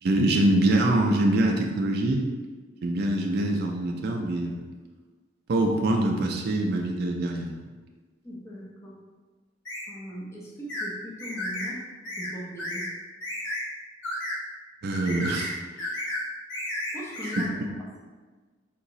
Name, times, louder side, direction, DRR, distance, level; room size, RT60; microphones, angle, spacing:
voice 1, 0.0-2.3 2.8-4.6 5.5-7.5 14.8-15.6 17.4-17.5, right 1 dB, 55° right, 1 dB, 0.4 m, -24 dB
voice 2, 8.2-9.0 9.9-11.8 12.2-13.0 16.9-17.6, equal, 15° left, -6 dB, 0.6 m, -39 dB
sound 1, 9.7-9.9 10.7-10.9 11.2-11.7 12.1-12.3 12.6-12.9 13.2-13.6 14.0-14.4 14.9-15.5 15.8-16.2 16.5-17.5, left 1 dB, 85° left, 1.2 m, -32 dB
3.9 x 2.9 x 2.6 m, 1.3 s
head